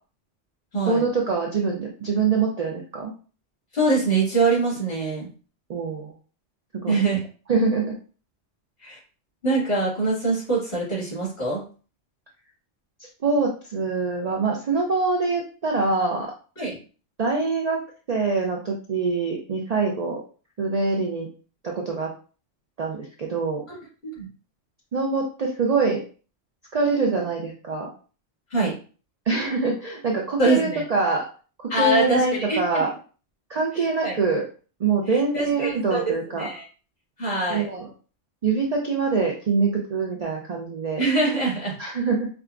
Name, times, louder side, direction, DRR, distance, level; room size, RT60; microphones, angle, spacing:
voice 1, 0.8-3.1 5.7-6.1 6.8-7.0 7.5-8.0 13.2-16.3 17.2-17.8 18.1-20.2 20.6-21.3 21.6-22.1 22.8-23.6 24.9-26.0 26.7-27.9 29.3-31.2 31.6-32.9 33.5-34.5 34.8-36.5 37.5-37.9 38.4-41.0 41.8-42.3, right 4 dB, 50° right, -1 dB, 0.5 m, -24 dB
voice 2, 3.7-5.3 6.9-7.2 8.8-9.0 9.4-11.6 16.6-16.8 24.2-24.3 28.5-28.7 30.4-30.8 31.7-32.8 33.8-34.2 35.3-36.6 37.2-37.7 41.0-41.8, right 3 dB, 55° left, -6 dB, 2.2 m, -24 dB
4.8 x 2.2 x 2.4 m, 0.38 s
omnidirectional pair, 1.2 m